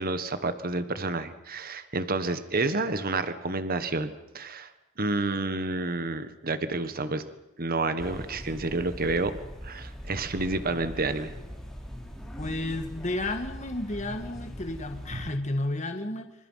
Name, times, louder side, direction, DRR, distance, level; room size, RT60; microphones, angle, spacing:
voice 1, 0.0-4.7 5.0-7.2 7.6-9.4 9.6-11.3 15.1-15.2, right 3 dB, 45° right, 11 dB, 1.5 m, -29 dB
sound 1, 8.0-15.3, equal, ahead, 4.0 m, -41 dB
voice 2, 12.4-16.3, left 1 dB, 35° left, 5 dB, 1.8 m, -32 dB
27.5 x 25.5 x 5.7 m, 0.94 s
head